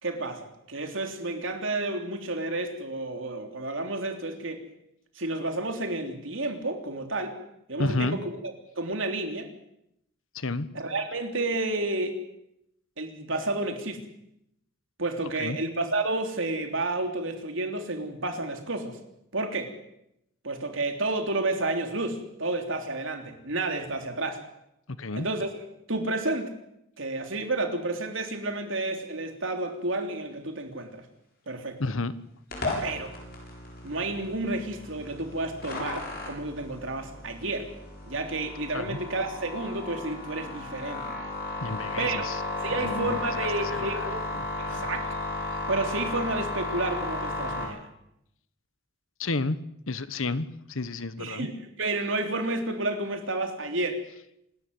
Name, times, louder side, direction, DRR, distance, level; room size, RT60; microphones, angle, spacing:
voice 1, 0.0-4.6 5.1-7.4 7.7-8.4 8.7-9.5 10.7-12.2 13.0-14.0 15.0-19.0 19.3-19.7 20.4-24.4 25.1-25.6 25.9-26.5 27.0-31.0 31.5-31.8 32.8-33.1 33.8-37.7 38.1-41.2 42.0-42.3 42.6-44.3 44.6-45.1 45.7-47.9 51.2-54.0, right 2 dB, 70° right, 5 dB, 3.5 m, -31 dB
voice 2, 7.8-8.2 10.3-10.7 15.4-15.6 25.0-25.3 31.8-32.1 38.7-39.0 41.6-42.4 42.7-44.9 49.2-49.6 49.9-51.5, left 3 dB, 75° left, 15 dB, 1.2 m, -31 dB
sound 1, 32.5-47.6, left 2 dB, 50° left, 7.9 m, -34 dB
27.5 x 13.0 x 9.6 m, 0.80 s
head